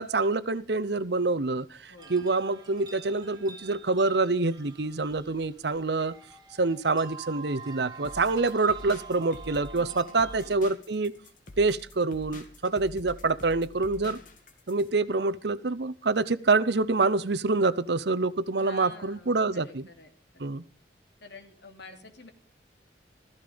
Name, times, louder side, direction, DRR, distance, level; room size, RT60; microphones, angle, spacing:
voice 1, 0.0-6.1 6.6-11.1 11.6-14.2 14.7-19.9 20.4-20.6, right 3 dB, 65° right, 0.8 m, -26 dB
sound 1, 2.0-10.5, right 5 dB, 25° right, 3.1 m, -47 dB
sound 2, 8.0-14.9, left 1 dB, 45° left, 2.1 m, -47 dB
voice 2, 9.8-10.5 18.6-20.5 21.2-22.3, left 3 dB, 70° left, 2.9 m, -49 dB
15.5 x 14.5 x 5.2 m
head